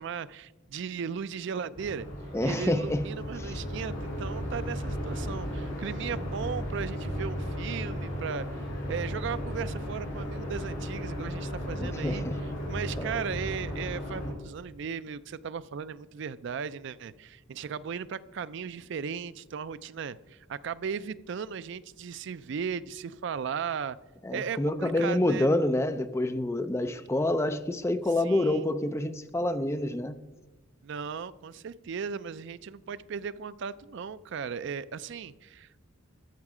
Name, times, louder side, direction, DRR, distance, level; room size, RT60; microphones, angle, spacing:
voice 1, 0.0-2.1 2.4-8.6 8.9-12.2 12.7-24.0 24.3-25.5 28.2-28.7 30.8-35.8, right 6 dB, 60° right, 16 dB, 0.4 m, -36 dB
sound 1, 1.7-14.3, equal, 60° left, 3.6 m, -35 dB
voice 2, 2.3-3.1 11.8-12.4 24.2-30.2, left 1 dB, 15° left, 10 dB, 0.5 m, -27 dB
13.0 x 6.6 x 4.9 m, 1.2 s
head